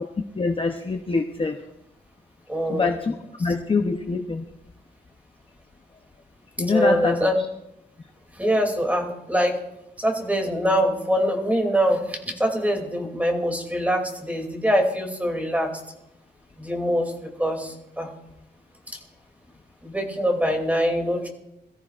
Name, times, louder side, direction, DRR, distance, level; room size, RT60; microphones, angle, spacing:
voice 1, 0.4-1.6 2.7-4.4 6.6-7.3, left 4 dB, 30° left, 3 dB, 0.7 m, -24 dB
voice 2, 2.5-2.9 6.7-7.3 8.4-9.6 10.0-15.7 16.6-17.1 17.4-18.1 19.8-21.3, equal, 10° right, 1 dB, 2.7 m, -23 dB
23.0 x 14.0 x 2.5 m, 0.85 s
wide cardioid pair, 130°, 18 cm